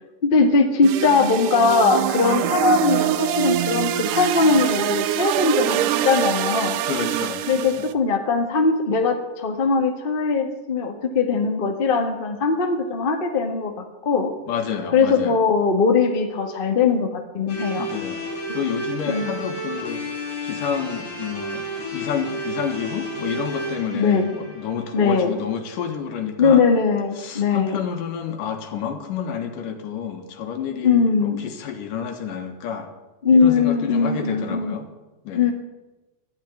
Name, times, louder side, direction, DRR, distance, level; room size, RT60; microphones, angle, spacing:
voice 1, 0.2-6.8 7.5-14.3 14.9-17.9 18.5-18.6 19.1-19.3 23.9-24.3 24.9-25.3 26.4-27.8 30.8-31.4 33.2-34.7 35.3-35.5, left 4 dB, 30° left, 4 dB, 0.9 m, -20 dB
sound 1, 0.8-7.9, right 12 dB, 85° right, 2.3 m, -24 dB
voice 2, 6.8-7.9 14.5-15.4 17.8-18.2 18.5-20.0 20.4-26.6 27.2-32.9 33.3-34.9 35.2-35.5, left 7 dB, 80° left, 5 dB, 3.1 m, -29 dB
sound 2, 17.5-25.6, right 1 dB, 55° left, 5.2 m, -32 dB
11.5 x 11.5 x 9.4 m, 1.1 s
omnidirectional pair, 3.7 m